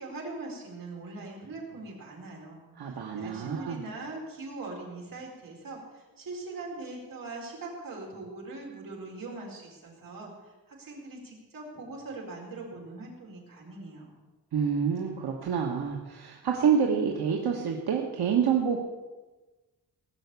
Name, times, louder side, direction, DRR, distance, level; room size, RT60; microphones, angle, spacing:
voice 1, 0.0-14.1, right 3 dB, 60° right, -1 dB, 4.4 m, -41 dB
voice 2, 2.8-3.8 14.5-18.8, right 7 dB, 85° right, 0 dB, 1.4 m, -27 dB
18.0 x 6.9 x 8.3 m, 1.2 s
wide cardioid pair, 160°, 37 cm